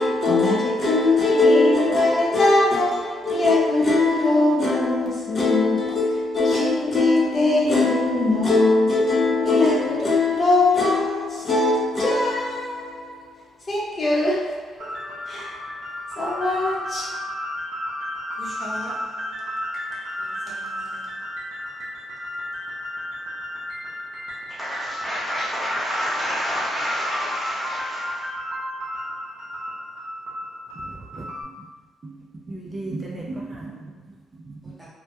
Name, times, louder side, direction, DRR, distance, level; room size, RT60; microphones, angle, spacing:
voice 1, 0.0-13.2 13.7-14.9 15.3-15.5 16.2-17.1, left 2 dB, 35° left, 0.7 m, -20 dB
sound 1, 14.8-31.4, left 1 dB, 85° right, 0.6 m, -33 dB
voice 2, 18.4-19.1 20.5-21.0 24.5-28.3 34.8-34.9, equal, ahead, 0.9 m, -30 dB
voice 3, 30.7-31.7 32.0-34.8, right 2 dB, 30° right, 0.4 m, -37 dB
2.2 x 2.1 x 2.8 m
cardioid pair, 90°, 0 cm